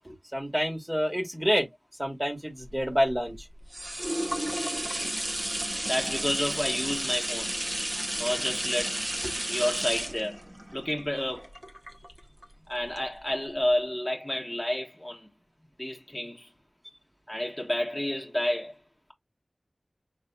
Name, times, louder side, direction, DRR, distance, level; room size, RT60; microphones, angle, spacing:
voice 1, 0.0-1.7 2.0-3.4 11.2-11.3, equal, 20° right, 1.5 m, -28 dB
sound 1, 2.7-12.4 13.0-13.1, right 1 dB, 35° right, 1.1 m, -32 dB
voice 2, 5.8-7.6 8.2-10.5 10.7-11.5 12.7-15.3 15.8-16.5 17.3-18.8, left 1 dB, 15° left, 1.2 m, -30 dB
5.3 x 3.4 x 2.3 m
wide cardioid pair, 50°, 0 cm